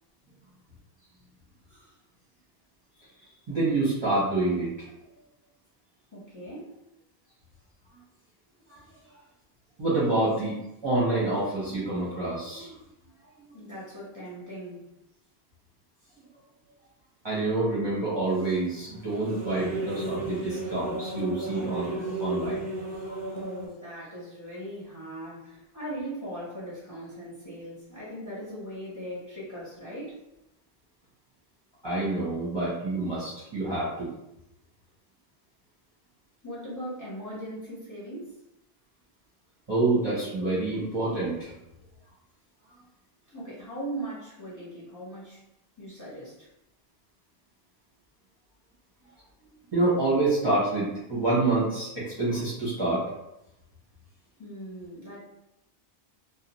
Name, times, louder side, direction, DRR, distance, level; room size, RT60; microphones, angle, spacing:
voice 1, 3.2-4.9 8.7-8.8 9.8-10.5 10.8-12.7 13.4-13.5 17.2-22.6 23.1-23.2 31.8-34.1 39.7-41.5 49.7-53.0, right 2 dB, 30° right, -9 dB, 0.8 m, -27 dB
voice 2, 6.1-6.7 7.2-7.3 9.0-9.3 13.5-14.9 23.3-30.2 36.4-38.4 43.3-45.4 45.8-46.5 54.4-55.2, right 1 dB, 20° left, -8 dB, 1.0 m, -39 dB
sound 1, 18.3-23.7, right 2 dB, 70° right, 0.8 m, -34 dB
2.5 x 2.2 x 2.9 m, 0.87 s
omnidirectional pair, 1.1 m